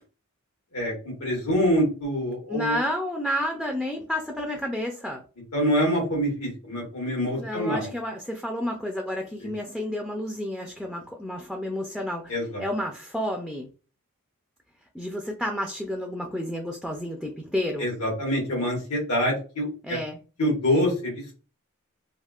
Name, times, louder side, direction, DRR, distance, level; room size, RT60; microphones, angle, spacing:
voice 1, 1.2-2.8 5.5-7.9 9.4-9.5 12.3-12.6 17.8-20.0 20.4-21.1, equal, 85° left, -4 dB, 1.3 m, -25 dB
voice 2, 2.5-5.2 7.4-13.7 14.9-17.9 19.8-20.2, equal, ahead, 2 dB, 0.3 m, -30 dB
3.4 x 2.4 x 2.3 m, 0.35 s
head